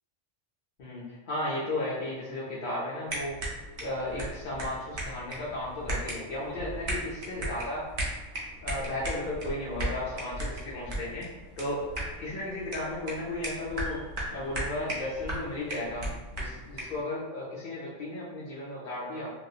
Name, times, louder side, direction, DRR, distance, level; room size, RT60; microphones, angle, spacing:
voice 1, 0.8-3.4 3.8-7.9 8.6-11.9 12.2-19.3, left 1 dB, 55° left, -8 dB, 0.6 m, -35 dB
sound 1, 3.1-17.0, right 1 dB, 50° right, 0.7 m, -37 dB
2.4 x 2.3 x 2.7 m, 1.2 s
omnidirectional pair, 1.3 m